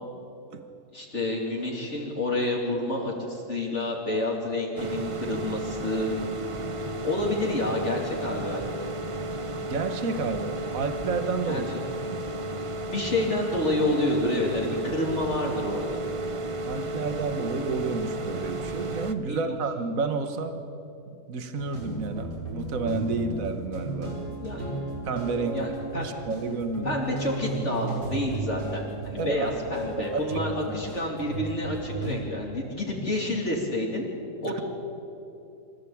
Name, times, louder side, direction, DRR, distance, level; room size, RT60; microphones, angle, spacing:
voice 1, 0.9-6.1 7.0-8.7 11.4-11.6 12.9-16.0 19.3-19.4 24.4-24.7 25.5-26.0 26.8-34.0 34.4-34.6, left 1 dB, 40° left, -2 dB, 3.2 m, -29 dB
sound 1, 4.8-19.1, right 1 dB, 35° right, 0.5 m, -33 dB
voice 2, 9.7-11.7 12.0-12.3 16.6-20.6 21.1-24.1 25.0-26.9 29.2-29.5 30.0-30.2 30.6-30.8 34.4-34.6, right 4 dB, 55° right, 8 dB, 1.8 m, -30 dB
sound 2, 21.6-32.2, right 2 dB, 70° right, 5.6 m, -34 dB
25.5 x 15.0 x 8.7 m, 2.8 s
omnidirectional pair, 1.8 m